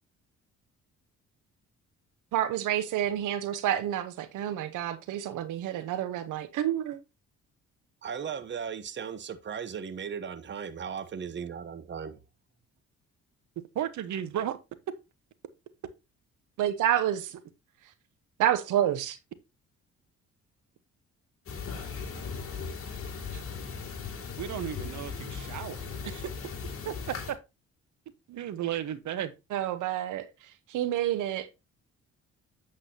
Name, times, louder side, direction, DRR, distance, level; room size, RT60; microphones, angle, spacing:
voice 1, 2.3-7.0 16.6-17.3 18.4-19.2 29.5-30.2 30.7-31.5, right 11 dB, 90° right, 1.1 m, -28 dB
voice 2, 8.0-12.2, right 7 dB, 40° right, 1.0 m, -37 dB
voice 3, 13.7-14.6 23.3-23.4 24.4-26.3 26.8-26.9 27.3-27.4 28.3-29.3, right 10 dB, 70° right, 1.3 m, -34 dB
sound 1, 21.5-27.3, left 5 dB, 50° left, 2.7 m, -38 dB
8.7 x 7.5 x 2.9 m
cardioid pair, 90°, 30 cm